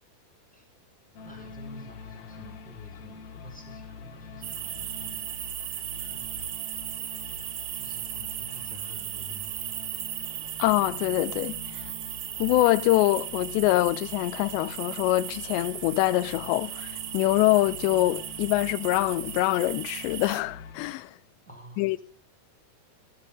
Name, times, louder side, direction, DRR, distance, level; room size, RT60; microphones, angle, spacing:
sound 1, 1.1-20.9, left 5 dB, 60° left, 3.9 m, -45 dB
voice 1, 1.2-5.8 6.1-6.7 7.7-9.9 21.5-22.0, left 2 dB, ahead, 4.4 m, -48 dB
sound 2, 4.4-20.4, right 13 dB, 85° right, 3.4 m, -37 dB
voice 2, 10.6-11.6 12.4-21.1 21.8-22.0, left 17 dB, 80° left, 2.9 m, -24 dB
15.0 x 13.0 x 3.7 m
omnidirectional pair, 5.1 m